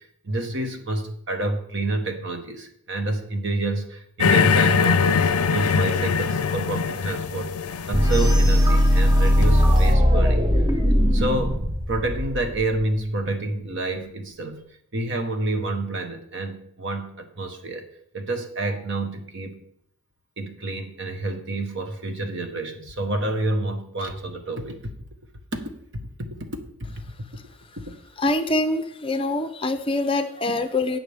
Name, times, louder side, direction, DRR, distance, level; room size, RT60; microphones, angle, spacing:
voice 1, 0.0-10.4 11.1-14.6 14.9-17.8 18.1-19.6 20.4-24.9 25.5-27.0 30.5-30.6, right 2 dB, 55° right, 5 dB, 1.3 m, -29 dB
sound 1, 4.2-9.8, left 6 dB, 80° left, 0.5 m, -22 dB
sound 2, 7.9-12.8, equal, 20° right, 0.9 m, -19 dB
voice 2, 28.2-31.0, left 2 dB, 25° left, 8 dB, 0.6 m, -24 dB
17.5 x 5.9 x 3.5 m, 0.70 s
head